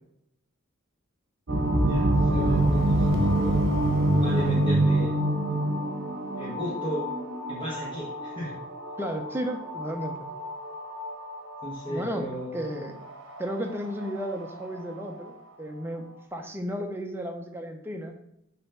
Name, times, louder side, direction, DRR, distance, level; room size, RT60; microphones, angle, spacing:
voice 1, 1.5-3.6 4.0-5.1 6.4-7.1 7.5-8.6 11.6-12.6, equal, 25° left, -4 dB, 1.0 m, -35 dB
sound 1, 1.5-14.9, right 1 dB, 65° right, 1.1 m, -26 dB
voice 2, 9.0-10.2 11.9-13.0 13.4-16.1 16.3-18.1, equal, 10° right, 2 dB, 0.7 m, -33 dB
6.7 x 3.0 x 5.7 m, 0.78 s
head